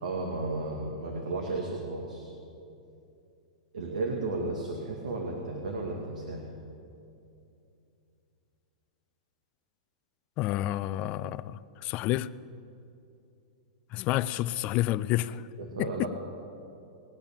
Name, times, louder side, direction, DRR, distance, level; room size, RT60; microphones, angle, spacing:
voice 1, 0.0-2.3 3.7-6.4 15.6-16.1, right 2 dB, 90° right, 0 dB, 2.2 m, -33 dB
voice 2, 10.4-12.3 13.9-15.4 15.8-16.1, left 15 dB, 35° left, 16 dB, 0.4 m, -29 dB
20.0 x 8.9 x 7.3 m, 2.6 s
hypercardioid pair, 140°, 4 cm